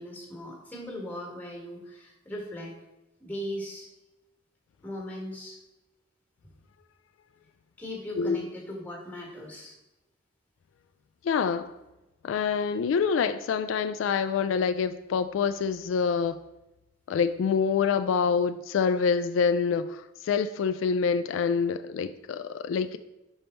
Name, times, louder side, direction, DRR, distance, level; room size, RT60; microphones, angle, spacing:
voice 1, 0.0-2.7 3.2-3.9 4.8-5.6 7.8-9.7, equal, 10° left, 1.5 m, -38 dB
voice 2, 11.2-11.7 12.2-16.4 17.1-23.0, left 6 dB, 80° left, 0.3 m, -26 dB
5.3 x 5.3 x 4.3 m
head